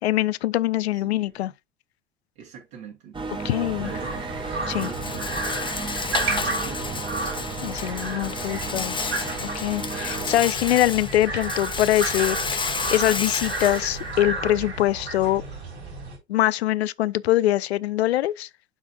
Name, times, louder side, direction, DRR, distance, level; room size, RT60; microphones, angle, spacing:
voice 1, 0.0-1.5 3.4-3.9 4.7-4.9 7.6-9.1 9.5-15.4 16.3-18.5, left 14 dB, 70° left, 0.5 m, -23 dB
voice 2, 0.9-1.5 2.4-4.3 4.7-5.8 6.1-7.1, right 7 dB, 55° right, 2.2 m, -44 dB
sound 1, 3.1-10.4, right 4 dB, 15° right, 1.4 m, -34 dB
Rattle, 3.6-14.7, left 4 dB, 15° left, 1.1 m, -32 dB
sound 2, 3.7-16.2, right 3 dB, 75° right, 4.0 m, -32 dB
12.0 x 4.1 x 2.2 m
figure-of-eight pair, 70°, 34 cm